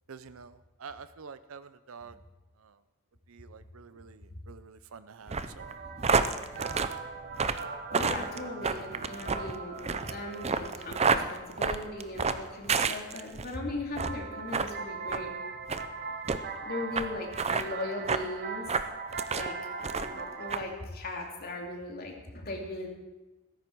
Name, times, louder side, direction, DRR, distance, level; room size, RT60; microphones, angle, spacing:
voice 1, 0.1-2.2 2.6-2.8 3.3-5.8 6.5-6.8 17.1-17.7, right 5 dB, 75° right, 13 dB, 0.6 m, -48 dB
sound 1, 5.3-13.5 13.9-14.2 14.5-14.7 15.1-15.2 15.7-15.9 16.3-16.4 17.0-17.1 17.3-17.7 18.1-18.3 18.7-19.5 19.8-20.2 20.5-20.6, right 5 dB, 30° right, 0.6 m, -29 dB
sound 2, 5.6-13.0 14.0-20.6, right 4 dB, 50° right, 1.2 m, -41 dB
voice 2, 7.9-15.3 16.6-18.7 19.3-22.9, left 2 dB, 45° left, 0 dB, 2.7 m, -38 dB
15.5 x 14.0 x 4.6 m, 1.1 s
head